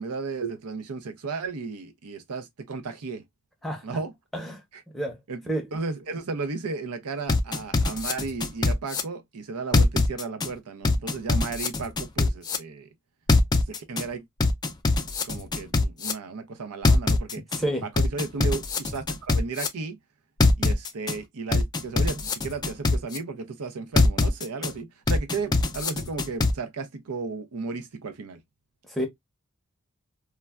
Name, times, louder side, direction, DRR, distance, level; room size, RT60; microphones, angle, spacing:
voice 1, 0.0-3.2 3.8-4.1 4.7-4.8 5.3-5.4 5.7-12.9 13.7-14.2 15.2-17.4 17.8-20.0 20.6-28.4, right 4 dB, 90° right, 0.6 m, -34 dB
sound 1, 7.3-9.0 9.7-10.5 10.8-12.6 13.3-14.0 14.4-16.1 16.8-17.6 18.0-19.7 20.4-21.1 21.5-23.2 24.0-24.7 25.1-26.5, left 3 dB, 20° left, 0.4 m, -22 dB
voice 2, 17.6-17.9 28.9-29.1, right 1 dB, ahead, 0.7 m, -29 dB
3.2 x 2.2 x 2.2 m
head